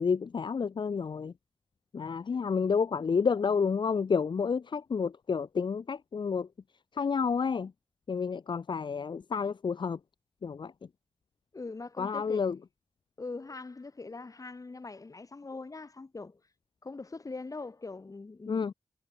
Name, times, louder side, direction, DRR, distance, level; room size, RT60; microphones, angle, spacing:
voice 1, 0.0-1.3 1.9-6.5 6.9-7.7 8.1-10.0 10.4-10.7 12.0-12.6 18.5-18.7, left 5 dB, 65° left, 1.1 m, -30 dB
voice 2, 11.5-12.5 13.2-16.4 16.8-18.7, left 3 dB, 40° left, 3.2 m, -42 dB
cardioid pair, 60°, 9 cm